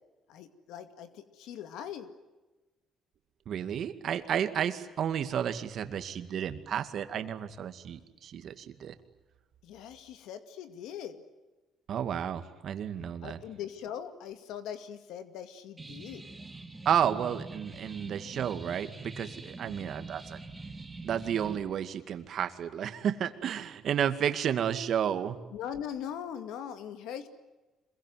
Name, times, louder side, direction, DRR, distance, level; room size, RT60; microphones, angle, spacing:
voice 1, 0.3-2.1 9.6-11.2 13.2-16.2 25.5-27.3, left 9 dB, 85° left, 9 dB, 2.2 m, -41 dB
voice 2, 3.5-9.0 11.9-13.4 16.8-20.4 21.0-25.4, right 9 dB, 55° right, 9 dB, 2.2 m, -32 dB
sound 1, 15.8-21.6, right 3 dB, 15° right, 2.8 m, -44 dB
26.5 x 22.5 x 9.4 m, 1.2 s
cardioid pair, 115°, 0 cm